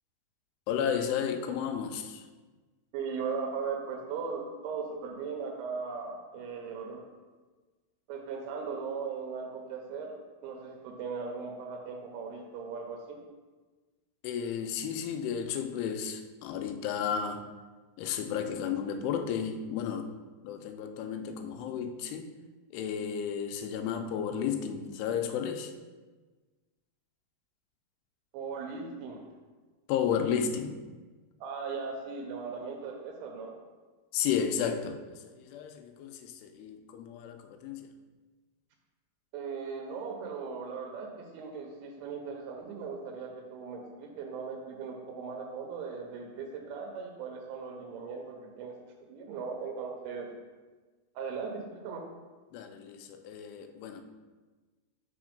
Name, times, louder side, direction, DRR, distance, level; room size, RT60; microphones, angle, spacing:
voice 1, 0.7-2.3 14.2-17.5 18.0-20.1 20.4-22.3 22.7-25.7 29.9-30.8 34.1-37.9 52.5-54.0, left 7 dB, 90° left, 7 dB, 2.6 m, -33 dB
voice 2, 2.9-7.0 8.1-10.1 10.4-13.2 28.3-29.3 31.4-33.5 39.3-50.3 51.2-52.0, right 5 dB, 85° right, 2 dB, 2.6 m, -38 dB
5.9 x 3.6 x 5.0 m, 1.3 s
omnidirectional pair, 4.6 m